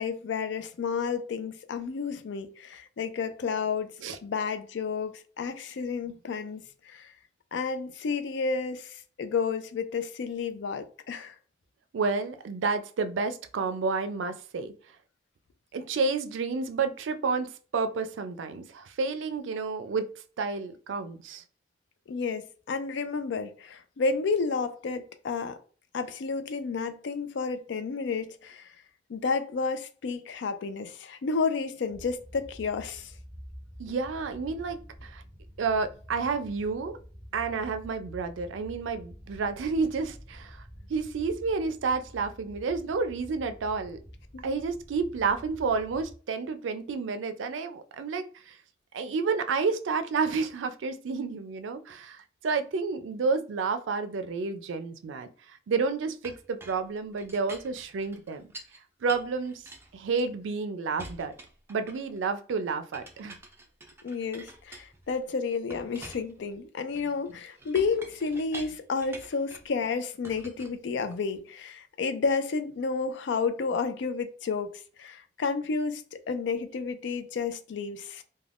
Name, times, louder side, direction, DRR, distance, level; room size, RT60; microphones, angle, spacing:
voice 1, 0.0-3.9 4.2-7.1 7.5-11.3 22.1-25.6 25.9-28.7 29.1-33.1 44.3-44.5 64.0-78.2, left 5 dB, 70° left, 0.4 m, -31 dB
voice 2, 11.9-14.7 15.7-20.1 20.4-21.4 33.8-35.2 35.6-37.0 37.3-40.6 40.9-44.0 44.4-48.6 48.9-58.4 59.0-59.6 59.9-61.3 61.7-63.4, right 4 dB, 85° right, 0.4 m, -30 dB
sound 1, 31.9-46.1, equal, 15° left, 1.0 m, -48 dB
Chink clink, 56.2-58.8 59.1-60.6 61.0-62.2 62.9-65.2 65.7-69.7 70.2-71.4, right 2 dB, 15° right, 0.4 m, -47 dB
2.4 x 2.2 x 3.3 m
head